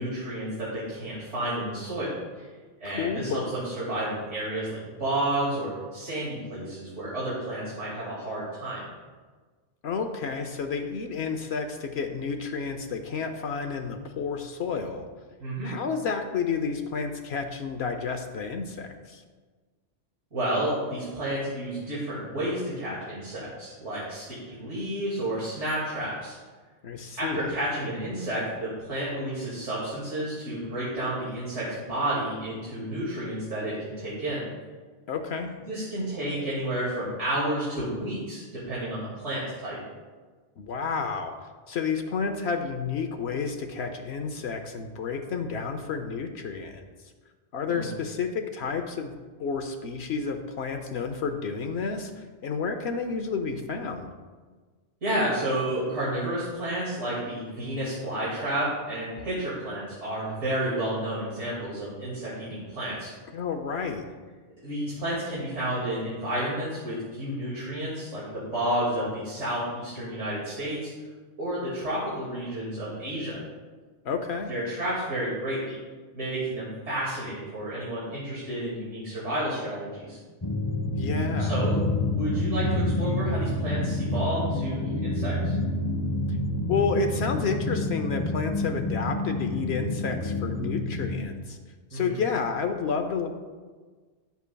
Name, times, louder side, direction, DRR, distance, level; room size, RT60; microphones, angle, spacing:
voice 1, 0.0-2.5 2.8-8.8 15.4-15.7 20.3-26.4 27.2-34.5 35.6-39.8 47.7-47.9 55.0-63.1 64.6-70.9 71.4-73.4 74.5-75.8 76.1-80.2 81.4-81.8 82.1-85.5 91.9-92.2, right 1 dB, 75° right, -8 dB, 2.5 m, -31 dB
voice 2, 2.9-3.6 9.8-15.1 15.6-19.2 26.8-27.4 35.1-35.5 40.6-41.3 41.7-46.8 47.5-49.1 49.4-54.1 63.3-64.1 74.0-74.5 81.0-81.6 86.7-91.6 91.9-93.3, left 5 dB, 65° left, 5 dB, 0.8 m, -30 dB
sound 1, 80.4-91.2, left 1 dB, 25° left, 0.5 m, -28 dB
11.0 x 8.1 x 2.3 m, 1.4 s
omnidirectional pair, 1.2 m